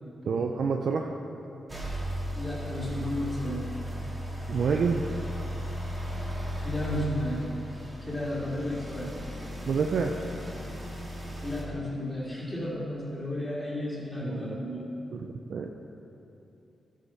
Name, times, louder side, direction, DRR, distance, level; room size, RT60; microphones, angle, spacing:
voice 1, 0.2-1.1 4.5-5.0 9.7-10.1 14.2-14.6 15.1-15.7, right 5 dB, 65° right, 3 dB, 0.5 m, -28 dB
sound 1, 1.7-11.6, equal, 20° right, 2.0 m, -36 dB
voice 2, 2.4-3.7 6.6-7.5 8.0-9.1 11.4-14.9, left 1 dB, 15° left, -9 dB, 2.5 m, -33 dB
12.0 x 6.5 x 5.7 m, 2.9 s
cardioid pair, 90°, 0 cm